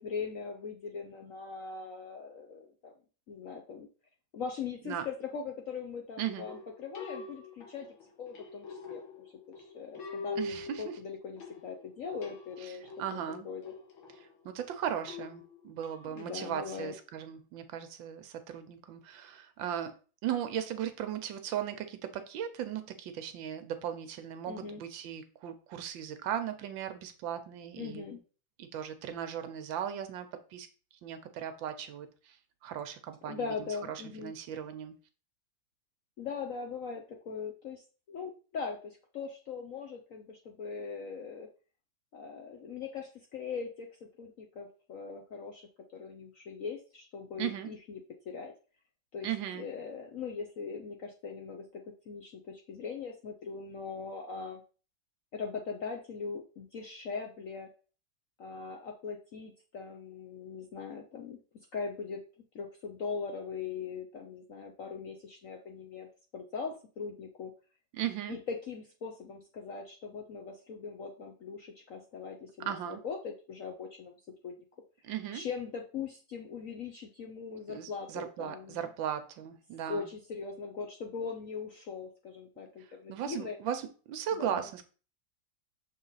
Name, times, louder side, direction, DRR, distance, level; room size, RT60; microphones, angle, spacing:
voice 1, 0.0-2.9 3.3-3.9 4.3-7.9 8.2-9.0 9.5-13.7 16.0-16.9 24.5-24.8 27.8-28.2 33.2-34.3 36.2-41.5 42.1-48.0 48.3-48.5 49.1-49.3 49.5-54.6 55.3-57.7 58.4-61.4 61.7-62.2 62.5-67.5 68.3-74.2 74.4-74.6 75.3-78.9 79.9-83.6 84.3-84.7, left 5 dB, 60° left, 2 dB, 0.9 m, -40 dB
sound 1, 6.5-16.3, left 3 dB, 80° left, 2.0 m, -44 dB
voice 2, 10.4-10.9 12.6-12.7 13.0-13.5 14.4-19.9 20.2-28.0 28.6-30.7 31.0-32.3 32.6-34.9 47.4-47.7 49.2-49.7 67.9-68.4 72.7-73.0 75.0-75.4 77.7-80.1 83.1-83.8 84.1-84.8, right 9 dB, 75° right, 9 dB, 1.4 m, -37 dB
6.3 x 3.8 x 4.0 m, 0.36 s
omnidirectional pair, 2.2 m